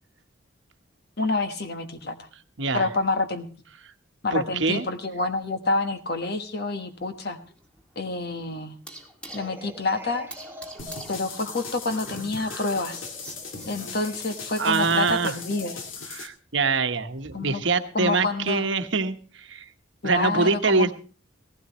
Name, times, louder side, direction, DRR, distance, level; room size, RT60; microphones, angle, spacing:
voice 1, 1.2-2.3 2.7-3.5 4.2-7.4 7.9-8.8 9.3-10.3 11.1-13.0 13.7-15.8 17.3-17.6 17.9-18.7 20.0-20.9, left 3 dB, 50° left, 7 dB, 1.3 m, -28 dB
voice 2, 2.6-2.9 4.3-4.8 14.6-15.3 16.1-19.7 20.0-20.9, right 4 dB, 60° right, 8 dB, 1.1 m, -24 dB
sound 1, 6.4-14.3, right 2 dB, 5° left, 2.2 m, -47 dB
sound 2, 9.3-15.9, equal, 10° right, 0.9 m, -46 dB
sound 3, 10.8-16.3, left 4 dB, 75° left, 2.0 m, -38 dB
18.0 x 15.5 x 3.0 m, 0.36 s
head